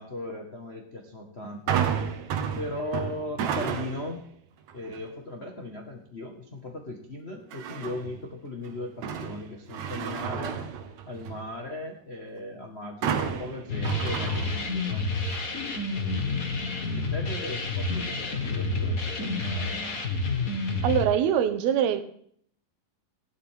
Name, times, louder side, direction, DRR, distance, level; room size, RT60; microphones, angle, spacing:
voice 1, 0.0-1.8 2.5-4.2 4.7-10.6 11.1-15.1 15.9-16.2 16.9-20.0, left 1 dB, 80° left, 1 dB, 0.5 m, -38 dB
sound 1, 1.7-4.2 4.7-5.1 7.5-8.2 8.6-11.5 13.0-15.0 15.3-15.4, right 7 dB, 60° right, 2.1 m, -31 dB
sound 2, 13.7-21.0, left 3 dB, 45° left, 1.1 m, -29 dB
voice 2, 20.8-22.0, right 9 dB, 90° right, 9 dB, 3.1 m, -23 dB
16.5 x 12.0 x 3.7 m, 0.63 s
omnidirectional pair, 4.3 m